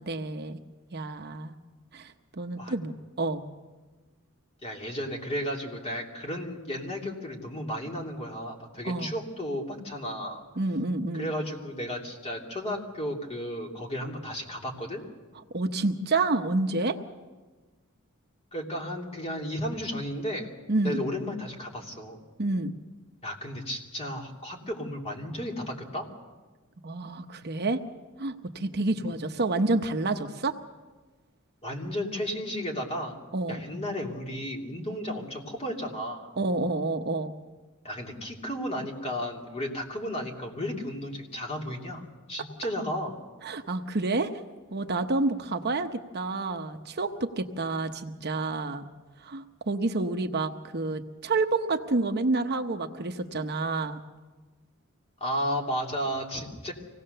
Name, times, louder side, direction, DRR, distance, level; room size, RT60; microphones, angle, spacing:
voice 1, 0.1-0.6 0.9-1.6 1.9-3.4 8.8-9.1 10.6-11.3 15.5-17.0 20.7-21.0 22.4-22.7 26.8-27.8 28.2-30.6 33.3-33.6 36.4-37.3 43.4-44.3 44.7-48.9 49.2-54.0, right 2 dB, 50° right, 6 dB, 0.9 m, -29 dB
voice 2, 4.6-10.4 11.1-15.0 18.5-20.5 20.8-22.2 23.2-26.1 31.6-33.1 33.5-36.3 37.8-43.1 55.2-56.7, equal, 30° left, 0 dB, 2.9 m, -33 dB
25.0 x 18.0 x 6.7 m, 1.3 s
head